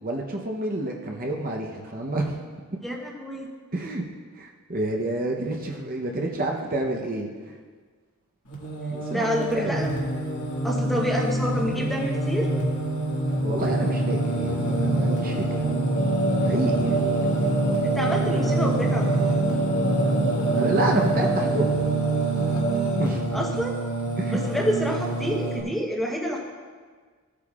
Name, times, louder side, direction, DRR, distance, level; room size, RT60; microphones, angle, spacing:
voice 1, 0.0-2.3 3.7-4.0 4.4-7.3 8.9-9.9 13.3-15.6 16.4-17.0 20.5-21.8 23.0-23.4 24.2-24.4, right 2 dB, 40° right, 1 dB, 0.8 m, -29 dB
voice 2, 2.8-3.5 9.1-9.9 10.6-12.5 17.8-19.2 23.3-23.8 24.3-26.4, equal, ahead, -1 dB, 1.0 m, -28 dB
Singing, 8.5-25.6, right 2 dB, 80° left, 1.9 m, -25 dB
15.5 x 8.4 x 2.4 m, 1.5 s
head